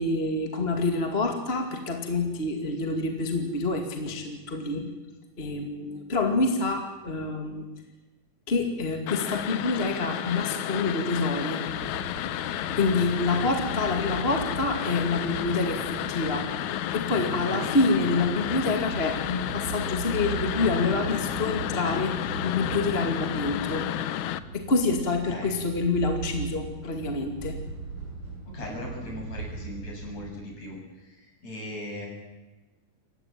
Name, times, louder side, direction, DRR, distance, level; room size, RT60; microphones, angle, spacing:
voice 1, 0.0-4.9 5.4-7.7 8.5-11.6 12.8-16.5 16.9-23.8 24.5-27.6, left 3 dB, 20° left, 4 dB, 1.9 m, -27 dB
sound 1, 9.1-24.4, left 12 dB, 70° left, 2.0 m, -32 dB
sound 2, 11.7-30.3, right 4 dB, 35° right, 7.2 m, -39 dB
voice 2, 28.5-32.1, left 1 dB, 50° left, 0 dB, 8.7 m, -38 dB
28.0 x 15.5 x 9.0 m, 1.1 s
omnidirectional pair, 4.0 m